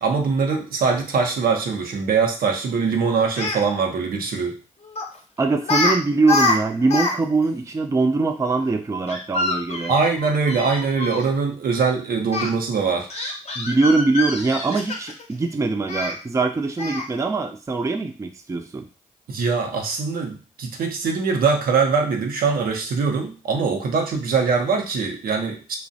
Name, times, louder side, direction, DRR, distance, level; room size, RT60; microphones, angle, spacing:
voice 1, 0.0-4.6 9.9-13.1 19.3-25.8, right 5 dB, 65° right, 2 dB, 0.6 m, -22 dB
Speech, 3.4-3.6 5.0-5.2 5.6-6.0 6.2-7.1 7.4-7.5 9.1-11.2 12.3-12.5 13.1-15.2 15.9-16.1 16.8-17.1, left 3 dB, 40° left, 0.7 m, -25 dB
voice 2, 5.4-9.9 13.6-18.9, right 3 dB, 20° right, 5 dB, 0.4 m, -22 dB
2.4 x 2.0 x 2.6 m, 0.35 s
supercardioid pair, 45°, 16 cm